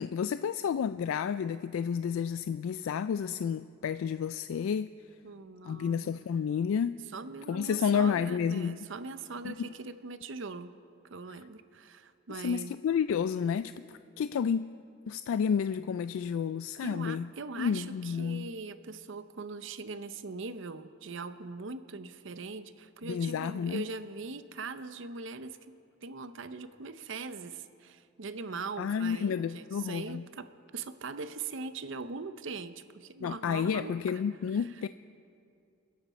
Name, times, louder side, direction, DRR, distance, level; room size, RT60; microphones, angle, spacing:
voice 1, 0.0-4.9 5.6-7.0 7.5-8.8 9.4-9.6 12.3-14.7 15.1-17.3 17.6-18.5 23.0-23.8 28.8-30.2 33.2-34.9, left 7 dB, 85° left, 13 dB, 0.3 m, -31 dB
voice 2, 5.2-6.1 7.1-10.7 11.1-12.7 16.8-34.2 34.5-34.9, right 4 dB, 65° right, 12 dB, 0.7 m, -41 dB
29.0 x 11.0 x 4.2 m, 2.4 s
head